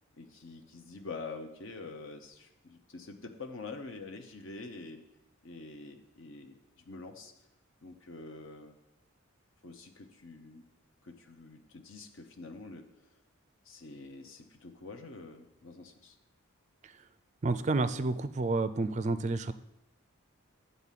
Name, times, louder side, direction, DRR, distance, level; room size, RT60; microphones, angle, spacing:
voice 1, 0.2-5.0 5.4-7.3 7.8-8.7 9.6-10.6 11.0-12.9 13.6-16.2, left 3 dB, 60° left, 4 dB, 0.8 m, -46 dB
voice 2, 17.4-19.5, right 3 dB, 35° right, 13 dB, 0.4 m, -30 dB
9.8 x 4.1 x 7.4 m, 0.87 s
head